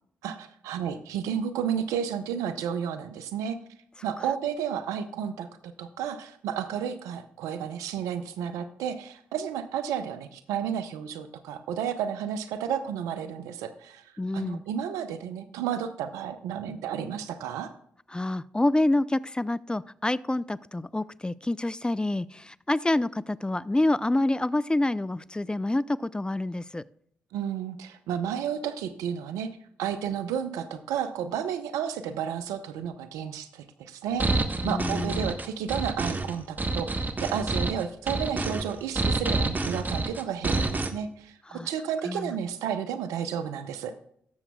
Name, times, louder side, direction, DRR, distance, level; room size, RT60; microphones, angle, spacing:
voice 1, 0.2-3.6 4.0-14.0 14.3-17.7 27.3-29.5 29.8-34.3 34.6-43.9, right 8 dB, 80° right, 11 dB, 0.7 m, -32 dB
voice 2, 14.2-14.6 18.1-26.8 34.6-35.3 41.5-41.7 42.0-42.4, left 2 dB, 15° left, 18 dB, 0.4 m, -27 dB
sound 1, 34.2-40.9, right 2 dB, 35° right, 1.2 m, -28 dB
18.0 x 7.2 x 2.3 m, 0.70 s
hypercardioid pair, 40°, 6 cm